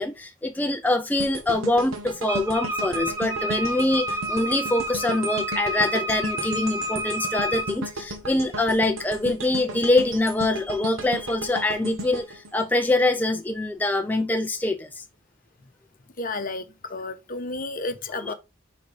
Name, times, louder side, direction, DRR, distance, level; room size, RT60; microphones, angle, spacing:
voice 1, 0.0-15.0 18.2-18.3, left 2 dB, 10° left, 0.4 m, -24 dB
sound 1, 1.2-13.4 13.8-14.0, right 1 dB, 85° right, 1.4 m, -35 dB
Wind instrument woodwind instrument, 2.3-7.8, equal, 15° right, 1.1 m, -30 dB
voice 2, 16.2-18.3, left 2 dB, 45° left, 1.0 m, -32 dB
5.7 x 4.5 x 4.8 m
head